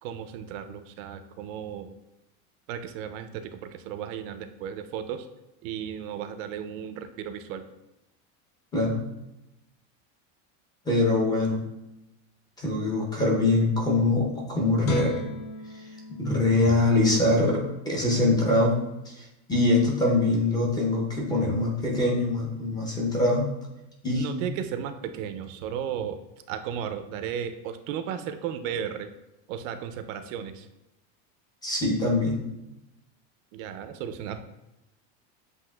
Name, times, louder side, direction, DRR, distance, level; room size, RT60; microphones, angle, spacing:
voice 1, 0.0-1.9 2.7-5.3 5.6-7.6 24.1-26.2 26.5-29.1 29.5-30.7 33.5-34.4, right 8 dB, 80° right, 9 dB, 0.5 m, -35 dB
voice 2, 8.7-9.0 10.9-11.6 12.6-15.1 16.2-18.7 19.1-23.5 24.0-24.2 31.6-32.4, left 2 dB, 10° left, -3 dB, 0.6 m, -23 dB
Guitar, 14.8-18.0 18.4-18.6, left 3 dB, 55° left, 0.4 m, -39 dB
7.6 x 2.8 x 2.2 m, 0.94 s
cardioid pair, 165°, 38 cm